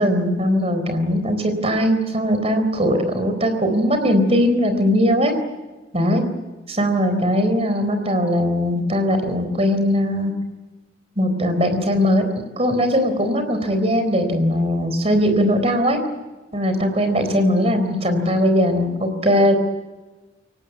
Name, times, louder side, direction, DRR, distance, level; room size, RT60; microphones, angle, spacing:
voice 1, 0.0-5.3 5.9-6.2 6.7-10.3 11.2-12.3 12.6-16.0 16.5-19.6, equal, 35° right, 7 dB, 4.0 m, -19 dB
23.5 x 19.0 x 9.4 m, 1.2 s
head